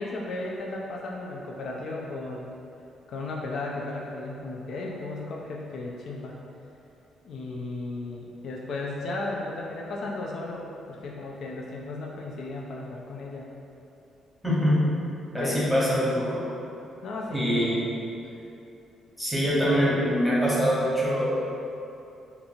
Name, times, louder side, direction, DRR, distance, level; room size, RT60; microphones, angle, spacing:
voice 1, 0.0-2.5 3.1-6.3 7.2-13.5 15.4-16.2 17.0-17.7, left 2 dB, 70° left, -2 dB, 0.4 m, -35 dB
voice 2, 14.4-14.9 15.3-16.4 17.3-17.8 19.2-21.4, equal, 5° left, -8 dB, 1.1 m, -24 dB
2.8 x 2.6 x 4.2 m, 2.8 s
cardioid pair, 90°, 0 cm